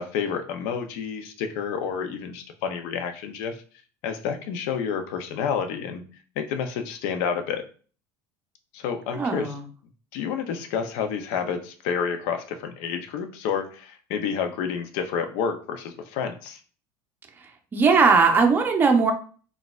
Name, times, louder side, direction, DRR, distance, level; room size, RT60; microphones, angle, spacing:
voice 1, 0.0-3.6 4.0-6.0 6.4-7.6 8.7-9.5 10.1-16.6, left 7 dB, 75° left, 6 dB, 0.5 m, -29 dB
voice 2, 9.1-9.6 17.7-19.1, right 4 dB, 20° right, 3 dB, 0.6 m, -19 dB
4.0 x 2.3 x 2.3 m, 0.40 s
cardioid pair, 125°, 10 cm